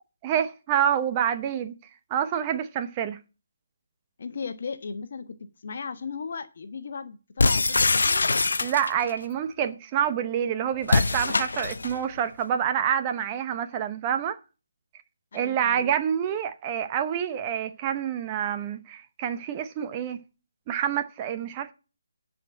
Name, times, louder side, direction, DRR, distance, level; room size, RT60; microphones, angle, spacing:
voice 1, 0.2-1.7 2.1-3.2 8.6-14.4 15.3-20.2 20.7-21.7, right 9 dB, 25° right, 0.8 m, -27 dB
voice 2, 4.2-8.3 15.3-15.9, left 5 dB, 50° left, 1.2 m, -37 dB
sound 1, 7.4-9.1 10.8-12.0, left 3 dB, 70° left, 0.7 m, -23 dB
10.0 x 5.0 x 7.4 m
figure-of-eight pair, 155°, 0 cm